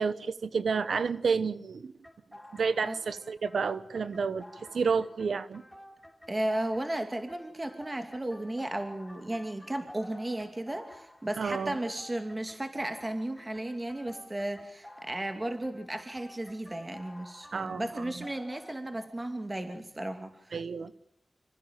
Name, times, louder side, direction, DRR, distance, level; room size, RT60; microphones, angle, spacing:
voice 1, 0.0-1.9 2.5-4.4 4.7-5.6 11.4-11.8 17.5-18.1 20.5-20.9, right 5 dB, 85° right, 1.1 m, -30 dB
sound 1, 2.0-18.7, left 1 dB, 10° left, 3.2 m, -52 dB
voice 2, 6.3-20.3, right 1 dB, 30° right, 2.7 m, -34 dB
26.0 x 15.5 x 9.1 m
cardioid pair, 45°, 0 cm